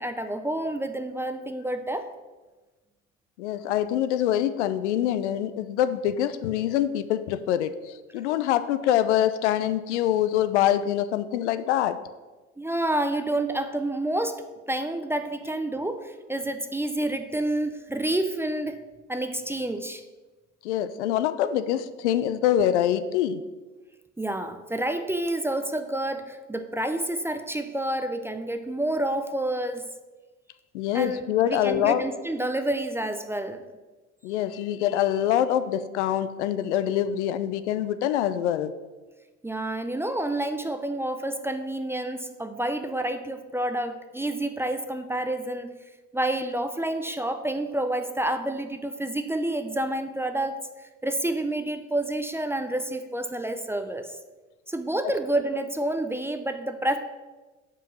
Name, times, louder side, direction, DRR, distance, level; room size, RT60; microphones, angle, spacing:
voice 1, 0.0-2.1 12.6-18.8 19.1-20.0 24.2-29.8 30.9-33.6 39.4-45.7 46.1-50.6 51.0-54.2 54.7-57.0, right 1 dB, 5° right, 8 dB, 0.4 m, -29 dB
voice 2, 3.4-7.7 8.1-12.0 20.6-23.4 30.7-32.0 34.2-38.7, left 11 dB, 70° left, 12 dB, 0.5 m, -25 dB
5.3 x 5.1 x 5.6 m, 1.2 s
figure-of-eight pair, 60°, 36 cm